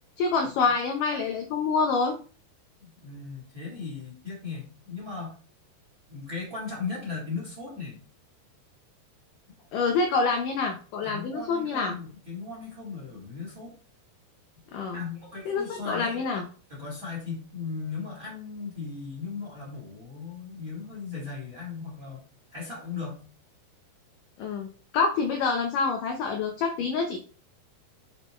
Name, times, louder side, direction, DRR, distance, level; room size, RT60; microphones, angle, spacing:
voice 1, 0.2-2.2 9.7-11.9 14.7-15.0 15.5-16.4 24.4-24.7 24.9-27.2, left 4 dB, 85° left, 3 dB, 1.8 m, -26 dB
voice 2, 2.8-5.4 6.1-8.0 11.0-13.7 14.9-16.3 16.7-22.2 22.5-23.2, left 4 dB, 25° right, -2 dB, 2.1 m, -37 dB
8.1 x 5.3 x 3.1 m, 0.37 s
omnidirectional pair, 5.0 m